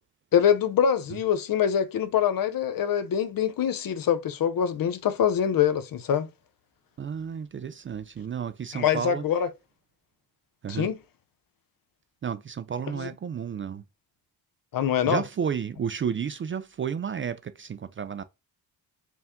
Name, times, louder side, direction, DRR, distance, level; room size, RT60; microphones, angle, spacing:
voice 1, 0.3-6.3 8.7-9.5 10.7-10.9 14.7-15.2, left 8 dB, 55° left, 0.7 m, -24 dB
voice 2, 7.0-9.2 10.6-10.9 12.2-13.8 15.0-18.2, right 7 dB, 30° right, 0.4 m, -32 dB
4.5 x 2.6 x 3.6 m
cardioid pair, 75°, 42 cm